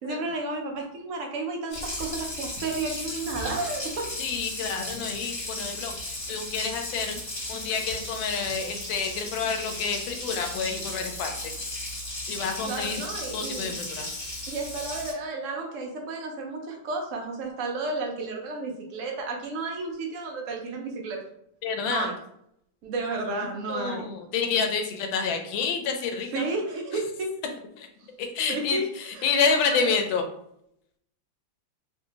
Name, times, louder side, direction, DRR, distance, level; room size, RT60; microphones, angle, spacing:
voice 1, 0.0-4.1 12.6-13.7 14.5-21.2 21.8-22.2 22.8-24.1 26.3-27.3 28.5-29.9, right 3 dB, 70° right, 1 dB, 0.7 m, -32 dB
Water tap faucet, 1.7-15.1, left 1 dB, 35° left, 1.3 m, -35 dB
voice 2, 4.2-6.0 6.3-7.2 7.5-11.5 12.3-13.0 13.3-14.1 21.6-22.1 23.7-26.4 27.8-27.9 28.2-30.2, left 5 dB, 85° left, 5 dB, 1.3 m, -28 dB
3.2 x 2.6 x 2.8 m, 0.74 s
omnidirectional pair, 2.1 m